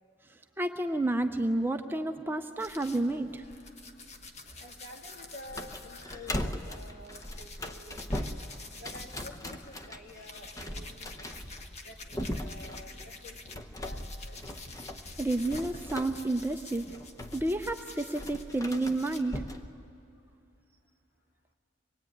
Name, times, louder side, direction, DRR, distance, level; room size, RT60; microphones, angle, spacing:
voice 1, 0.6-3.4 15.2-17.0 17.3-19.4, right 2 dB, 10° right, 6 dB, 0.5 m, -30 dB
sound 1, 2.6-13.5 13.8-19.2, left 3 dB, 35° left, 1.2 m, -48 dB
voice 2, 4.6-8.4 8.8-11.3 11.8-14.3, left 1 dB, 55° left, 0 dB, 3.1 m, -49 dB
sound 2, 5.5-19.7, left 1 dB, 15° left, 0.8 m, -40 dB
24.0 x 21.0 x 9.2 m, 2.6 s
head